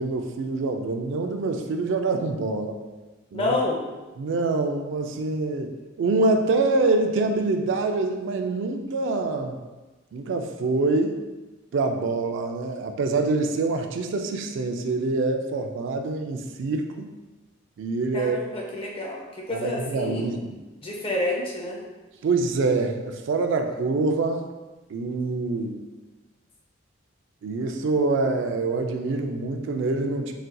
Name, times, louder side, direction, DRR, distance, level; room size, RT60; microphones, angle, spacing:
voice 1, 0.0-2.8 3.3-3.6 4.2-5.7 6.0-9.6 10.1-11.2 11.7-17.1 17.8-18.4 19.5-20.6 22.2-24.5 24.9-25.8 27.4-30.3, right 3 dB, 65° right, 5 dB, 0.3 m, -25 dB
voice 2, 3.3-3.8 18.1-20.4 20.8-21.8, left 2 dB, 30° left, -1 dB, 0.6 m, -29 dB
4.1 x 2.5 x 2.2 m, 1.2 s
head